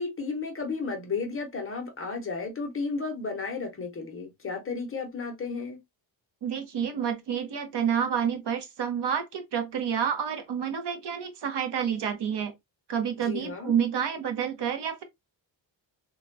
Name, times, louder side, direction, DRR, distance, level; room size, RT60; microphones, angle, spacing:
voice 1, 0.0-5.8 13.2-13.7, left 4 dB, 30° left, 0.6 m, -33 dB
voice 2, 6.4-12.5 12.9-15.0, right 8 dB, 60° right, 0.8 m, -29 dB
3.3 x 2.2 x 2.5 m
wide cardioid pair, 170°, 46 cm